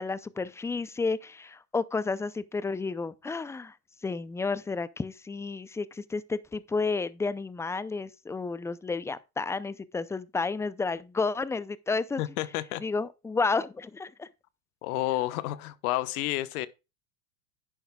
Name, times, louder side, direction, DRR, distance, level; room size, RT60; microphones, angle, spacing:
voice 1, 0.0-3.7 4.0-12.2 12.8-14.3, left 4 dB, 5° left, 0.4 m, -31 dB
voice 2, 12.2-12.8 14.8-16.7, left 16 dB, 65° left, 1.1 m, -30 dB
11.0 x 8.9 x 2.3 m
hypercardioid pair, 105°, 46 cm